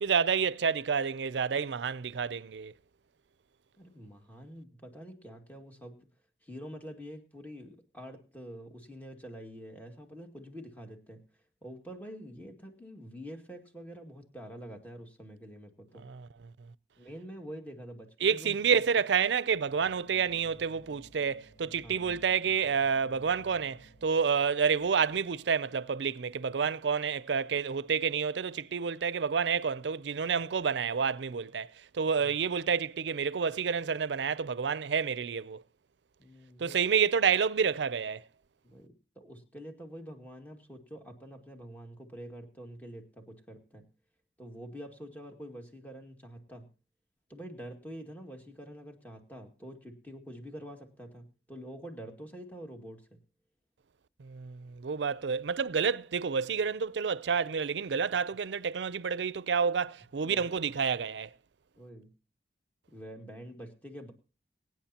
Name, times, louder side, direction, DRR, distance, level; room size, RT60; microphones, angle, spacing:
voice 1, 0.0-2.7 16.0-16.3 18.2-35.6 36.6-38.2 54.2-61.3, right 6 dB, 85° right, 0.5 m, -29 dB
voice 2, 3.8-6.1 6.4-11.3 11.6-16.1 17.0-18.6 21.8-22.1 32.2-32.3 36.2-36.8 38.6-43.9 44.4-46.7 47.3-53.2 60.2-60.7 61.8-62.1 62.9-64.1, equal, 10° left, 2.2 m, -46 dB
sound 1, 19.4-26.2, right 1 dB, 80° left, 3.2 m, -59 dB
23.5 x 9.5 x 2.9 m
head